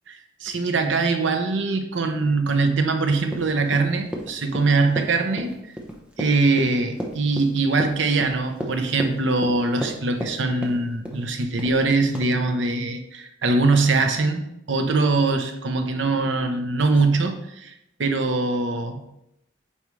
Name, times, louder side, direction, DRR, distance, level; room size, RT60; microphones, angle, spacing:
voice 1, 0.1-5.5 6.2-17.7 18.0-19.0, right 3 dB, 85° right, 6 dB, 0.8 m, -22 dB
Run, 3.3-10.4 10.6-11.2 11.6-11.8 12.1-12.3, equal, 5° right, 0.9 m, -33 dB
8.6 x 4.8 x 3.2 m, 0.82 s
head